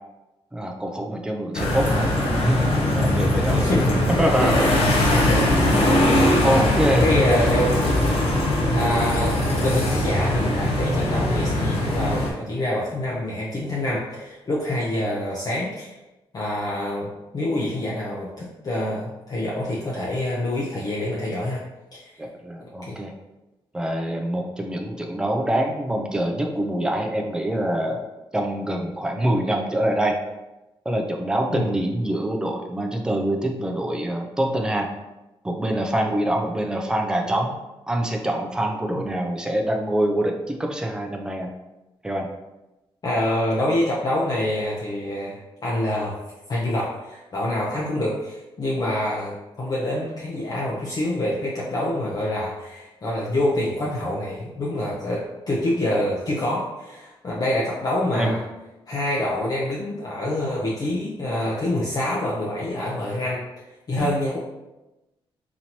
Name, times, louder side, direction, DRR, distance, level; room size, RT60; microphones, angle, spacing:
voice 1, 0.5-2.1 2.4-3.6 4.2-4.6 5.1-5.7 6.4-7.0 22.2-23.1 23.7-28.0 28.3-30.2 30.9-34.9 35.4-37.5 37.9-41.5 42.0-42.3 58.1-58.4 64.0-64.1, right 1 dB, 10° right, 2 dB, 0.5 m, -25 dB
sound 1, 1.5-12.3, left 1 dB, 80° left, 0.8 m, -21 dB
voice 2, 3.5-4.7 5.1-5.8 7.0-7.9 8.7-16.0 16.3-21.6 21.9-22.1 22.9-23.0 31.5-31.7 38.9-39.0 43.0-46.2 46.5-58.4 58.9-63.4 63.9-64.4, left 1 dB, 40° left, -5 dB, 0.7 m, -26 dB
4.0 x 3.0 x 2.9 m, 1.0 s
cardioid pair, 110°, 10 cm